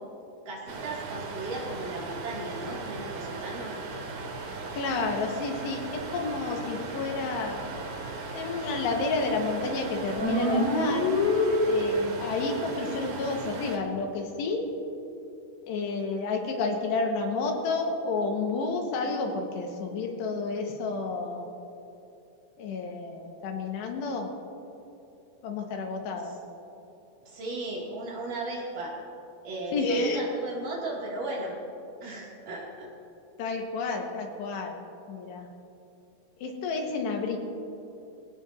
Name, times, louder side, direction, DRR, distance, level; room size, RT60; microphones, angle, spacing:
voice 1, 0.5-3.8 27.3-28.9 29.4-31.5 32.0-32.9, right 2 dB, 55° right, -4 dB, 3.8 m, -36 dB
sound 1, 0.7-13.8, right 3 dB, 75° right, 3.7 m, -38 dB
voice 2, 4.8-7.6 8.3-11.2 11.7-14.7 15.6-21.5 22.6-24.3 25.4-26.4 29.7-30.3 32.1-32.3 33.4-34.8 35.1-35.5 36.4-37.4, left 3 dB, 80° left, 2 dB, 3.5 m, -30 dB
sound 2, 10.2-12.2, left 1 dB, 30° left, 2.6 m, -25 dB
23.0 x 17.5 x 2.7 m, 2.8 s
omnidirectional pair, 4.9 m